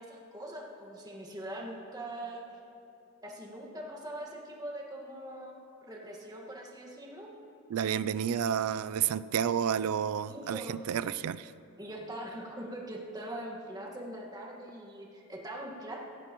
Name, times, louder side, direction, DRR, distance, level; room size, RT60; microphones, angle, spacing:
voice 1, 0.0-2.4 3.2-5.6 5.8-7.3 10.2-10.9 11.8-16.0, right 1 dB, 20° right, -1 dB, 1.6 m, -42 dB
voice 2, 7.7-11.5, right 8 dB, 80° right, 15 dB, 0.3 m, -30 dB
17.0 x 15.0 x 3.0 m, 2.9 s
head